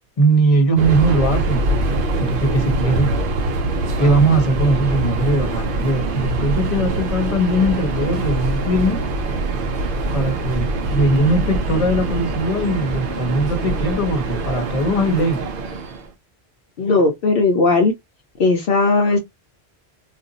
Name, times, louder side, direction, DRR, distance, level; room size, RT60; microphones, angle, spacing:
voice 1, 0.2-1.6 2.2-3.1 4.0-9.0 10.1-15.5, right 2 dB, 35° left, 0.9 m, -19 dB
Subway metro underground, 0.8-16.1, right 2 dB, 65° right, 0.7 m, -23 dB
voice 2, 16.8-17.9 18.4-19.2, left 3 dB, 65° left, 0.8 m, -17 dB
2.5 x 2.2 x 3.9 m
omnidirectional pair, 1.1 m